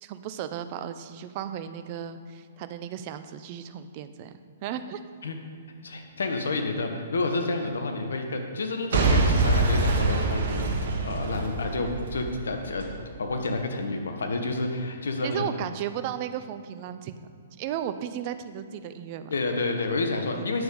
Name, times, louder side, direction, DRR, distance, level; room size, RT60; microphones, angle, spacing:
voice 1, 0.0-4.3 4.6-5.0 10.4-10.6 15.2-17.3 17.6-19.3 20.3-20.4, right 10 dB, 40° right, 10 dB, 0.6 m, -35 dB
voice 2, 5.8-10.7 11.0-12.9 13.2-15.5 19.3-20.6, left 3 dB, 75° left, 4 dB, 1.3 m, -29 dB
Boom / Shatter / Crushing, 8.9-12.9 13.5-13.6, right 3 dB, 65° right, 1.5 m, -25 dB
9.6 x 6.8 x 5.4 m, 2.3 s
hypercardioid pair, 120°, 0 cm